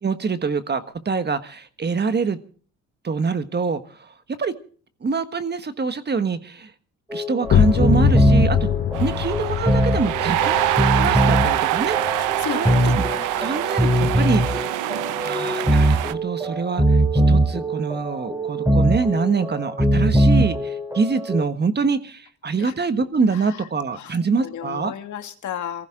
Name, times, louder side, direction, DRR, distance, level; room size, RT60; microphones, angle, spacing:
voice 1, 0.0-2.4 3.0-4.1 4.4-4.5 5.0-6.7 7.1-12.7 12.9-13.0 13.3-14.9 15.2-17.0 17.3-24.9, right 4 dB, 35° right, 10 dB, 1.4 m, -25 dB
sound 1, 7.1-21.4, right 1 dB, 10° right, 3.8 m, -21 dB
sound 2, 7.4-13.0, left 10 dB, 45° left, 0.8 m, -24 dB
sound 3, 8.9-16.1, right 15 dB, 85° right, 0.7 m, -25 dB
voice 2, 12.2-13.7 22.6-22.7 24.0-24.1 24.4-25.9, left 9 dB, 75° left, 6 dB, 2.1 m, -33 dB
23.5 x 15.0 x 3.7 m, 0.43 s
cardioid pair, 90°, 30 cm